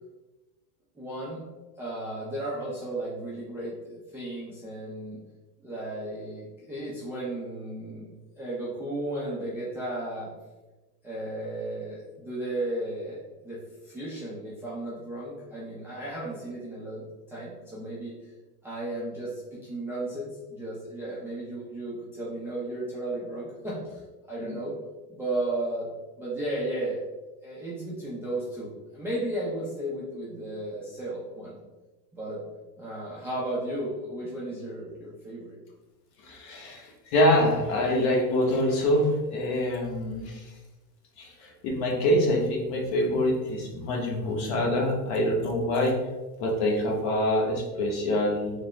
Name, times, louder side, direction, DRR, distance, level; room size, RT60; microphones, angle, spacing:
voice 1, 0.9-1.4 1.8-5.2 5.6-8.1 8.4-10.3 11.0-18.1 18.6-24.0 24.3-24.7 25.1-25.9 26.2-27.0 27.4-31.5 32.1-32.4 32.8-35.6, right 1 dB, 5° right, -8 dB, 0.3 m, -34 dB
voice 2, 36.2-40.4 41.2-46.0 46.4-48.5, left 1 dB, 50° left, -1 dB, 1.0 m, -25 dB
3.4 x 2.0 x 3.1 m, 1.1 s
supercardioid pair, 110°, 49 cm